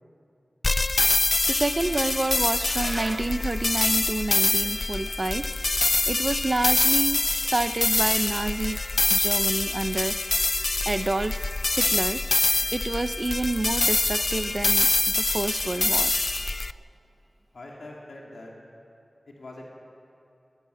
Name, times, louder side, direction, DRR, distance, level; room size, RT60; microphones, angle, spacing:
sound 1, 0.6-16.7, left 2 dB, 45° left, 0.4 m, -25 dB
voice 1, 1.5-5.5 6.1-8.8 9.1-10.2 10.9-12.2 12.6-16.6, right 2 dB, 40° right, 11 dB, 0.5 m, -29 dB
voice 2, 17.5-18.5 19.3-19.7, left 2 dB, 85° left, -2 dB, 3.0 m, -43 dB
18.5 x 17.5 x 8.4 m, 2.6 s
wide cardioid pair, 75°, 0 cm